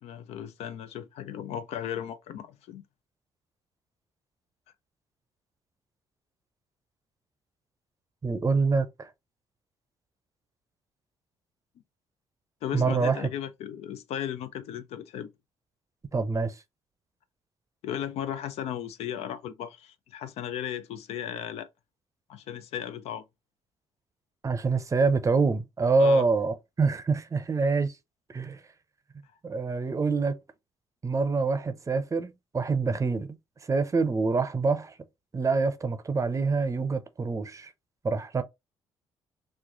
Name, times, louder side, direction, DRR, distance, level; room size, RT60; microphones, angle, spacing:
voice 1, 0.0-2.8 12.6-15.3 17.8-21.7 22.3-23.2 26.0-26.2, left 10 dB, 75° left, 0.4 m, -36 dB
voice 2, 8.2-9.1 12.7-13.3 16.1-16.5 24.4-27.9 28.3-28.6 29.4-30.4 31.0-33.4 33.7-34.9 35.3-37.7 38.0-38.4, right 4 dB, 30° right, 0.6 m, -26 dB
3.1 x 2.1 x 3.7 m
supercardioid pair, 65°, 11 cm